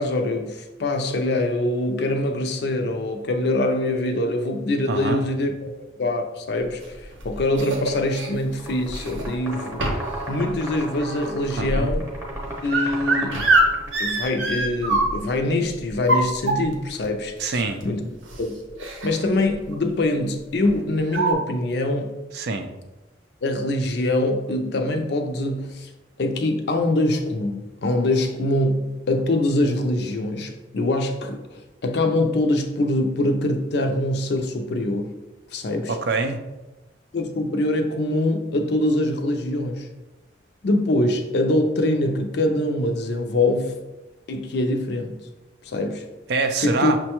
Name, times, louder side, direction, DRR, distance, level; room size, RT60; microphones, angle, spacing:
voice 1, 0.0-5.7 6.0-10.0 10.3-12.1 12.6-13.4 14.0-18.0 18.4-18.6 19.0-22.1 23.4-25.9 26.2-35.2 35.5-35.9 37.1-39.9 40.6-43.7 44.3-45.1 45.6-46.0 46.6-46.9, left 1 dB, 60° left, 5 dB, 0.4 m, -24 dB
voice 2, 4.9-5.2 11.6-11.9 17.4-17.8 22.3-22.7 35.9-36.4 46.3-47.0, right 3 dB, 55° right, 7 dB, 0.4 m, -25 dB
sound 1, 6.8-8.3 8.9-9.4 9.8-10.2 10.5-15.4 15.9-16.9 17.8-17.9 18.2-18.4 18.8-19.2 19.5-19.7 20.6-20.7 21.1-21.3, right 2 dB, 85° right, 0.7 m, -24 dB
sound 2, 8.5-14.2, right 1 dB, 10° right, 0.7 m, -35 dB
6.0 x 2.2 x 2.9 m, 1.1 s
head